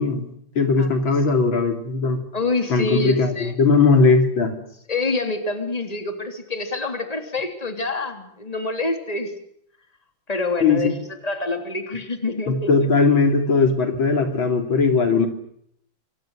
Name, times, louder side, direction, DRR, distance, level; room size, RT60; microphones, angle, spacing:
voice 1, 0.0-2.2 2.7-4.6 10.6-10.9 12.5-15.3, left 4 dB, 80° left, 6 dB, 3.8 m, -19 dB
voice 2, 0.8-1.1 2.3-3.5 4.9-9.3 10.3-10.9 11.2-12.7, left 2 dB, 20° left, 6 dB, 3.3 m, -26 dB
26.5 x 25.0 x 6.4 m, 0.71 s
omnidirectional pair, 2.1 m